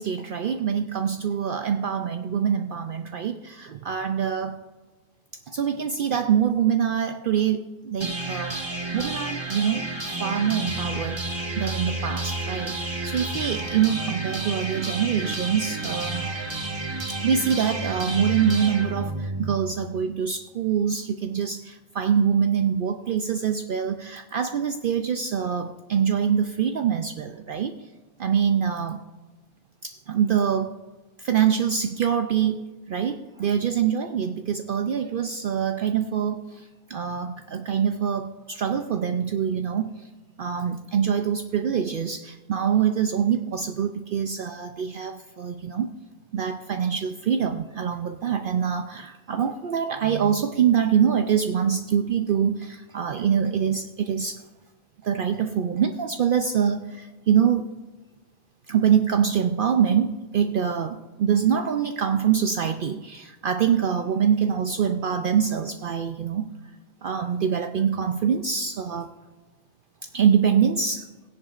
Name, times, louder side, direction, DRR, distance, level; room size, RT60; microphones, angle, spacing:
voice 1, 0.0-4.6 5.5-8.6 8.9-9.9 10.2-16.3 17.2-27.7 28.2-29.0 29.8-30.7 31.2-32.6 32.9-40.1 40.4-45.9 46.3-54.4 55.0-57.7 58.7-66.5 67.0-69.1 70.1-71.1, right 8 dB, 60° right, 7 dB, 0.7 m, -24 dB
sound 1, 8.0-20.0, right 2 dB, 25° right, 1.3 m, -31 dB
17.0 x 10.5 x 2.5 m, 1.2 s
omnidirectional pair, 1.1 m